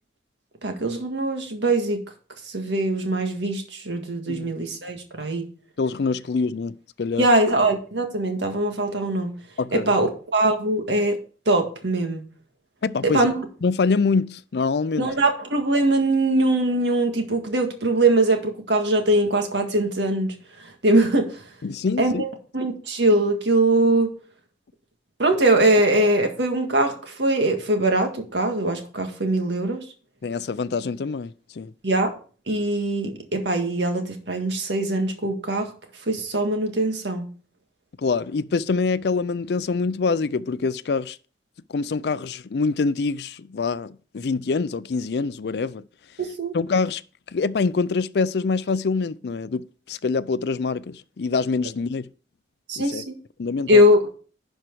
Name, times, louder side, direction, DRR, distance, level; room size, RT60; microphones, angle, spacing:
voice 1, 0.6-2.0 2.5-5.5 7.2-9.3 9.7-11.2 11.4-12.2 13.0-13.3 15.0-20.3 20.8-21.4 22.0-24.1 25.2-29.8 31.8-32.1 32.5-35.7 36.1-37.3 46.2-46.5 52.7-53.1 53.7-54.0, right 1 dB, 80° right, 1.7 m, -22 dB
voice 2, 5.8-7.3 9.6-9.9 12.8-13.3 13.6-15.1 21.6-22.3 22.6-22.7 30.2-31.7 38.0-41.2 41.7-45.8 46.5-47.0 47.3-52.1 52.8-53.0 53.4-53.8, left 4 dB, 65° left, 0.4 m, -25 dB
11.0 x 4.5 x 4.6 m
head